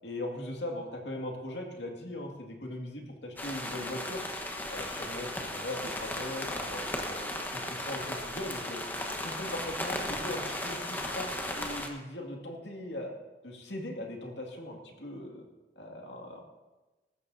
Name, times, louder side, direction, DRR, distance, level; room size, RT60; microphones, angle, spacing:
voice 1, 0.0-4.2 4.7-8.8 9.2-13.1 13.4-15.4 15.8-16.4, left 1 dB, 85° left, 1 dB, 2.3 m, -39 dB
sound 1, 3.4-11.9, left 1 dB, 10° left, 1.2 m, -36 dB
19.5 x 14.5 x 2.8 m, 1.2 s
head